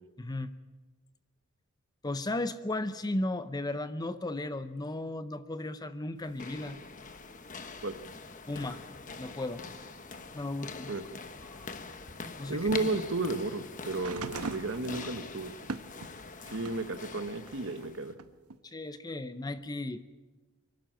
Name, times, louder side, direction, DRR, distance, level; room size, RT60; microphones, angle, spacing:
voice 1, 0.2-0.5 2.0-6.8 8.5-8.8 9.2-9.6 10.3-11.0 12.4-12.7 18.7-20.0, left 2 dB, 15° left, 12 dB, 0.6 m, -35 dB
sound 1, 6.2-18.1, left 4 dB, 35° left, 1.1 m, -44 dB
voice 2, 12.5-15.5 16.5-18.1, right 2 dB, 55° right, 11 dB, 1.1 m, -33 dB
sound 2, 13.9-16.9 17.4-18.6 19.6-19.7, right 4 dB, 90° right, 1.0 m, -41 dB
24.0 x 12.0 x 9.0 m, 1.2 s
head